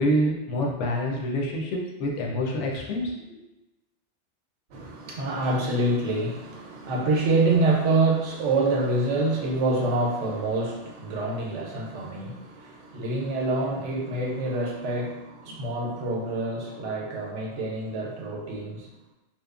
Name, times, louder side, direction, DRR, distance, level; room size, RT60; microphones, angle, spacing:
voice 1, 0.0-3.4, equal, 80° left, -1 dB, 0.9 m, -27 dB
voice 2, 4.7-18.9, right 2 dB, 80° right, -1 dB, 0.9 m, -26 dB
2.9 x 2.1 x 2.3 m, 1.0 s
omnidirectional pair, 1.2 m